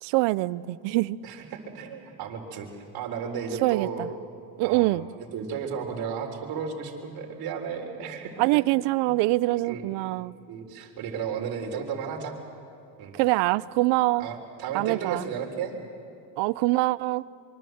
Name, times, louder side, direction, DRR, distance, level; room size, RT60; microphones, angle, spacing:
voice 1, 0.0-1.2 3.6-4.1 4.6-5.1 8.4-10.3 13.1-14.3 14.7-15.2 16.4-17.2, right 20 dB, 75° right, 0.7 m, -24 dB
voice 2, 1.2-2.7 2.9-4.0 4.6-8.4 9.0-9.1 9.6-9.9 10.5-12.4 13.0-13.1 14.2-15.8, right 6 dB, 60° right, 4.0 m, -34 dB
25.0 x 24.0 x 7.9 m
cardioid pair, 140°, 43 cm